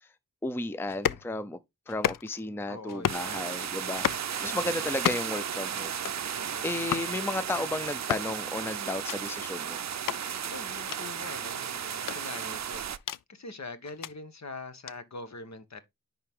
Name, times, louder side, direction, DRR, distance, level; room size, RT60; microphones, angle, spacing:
voice 1, 0.4-1.6 1.9-4.1 4.4-5.9 6.2-9.8, left 2 dB, 5° left, 0.5 m, -33 dB
sound 1, 0.9-1.3 1.9-2.5 2.9-3.3 3.9-4.3 4.9-5.4 5.9-6.2 6.9-7.1 7.9-8.3 8.9-9.2 9.9-10.2 10.9-11.0 11.9-13.2 13.8-14.1 14.9-15.0, left 10 dB, 75° left, 0.5 m, -32 dB
voice 2, 2.7-3.6 4.4-4.8 6.3-6.7 10.4-12.8 13.3-15.8, left 3 dB, 55° left, 1.2 m, -43 dB
sound 2, 3.1-13.0, right 8 dB, 55° right, 0.5 m, -34 dB
10.0 x 3.9 x 3.6 m
wide cardioid pair, 90°, 33 cm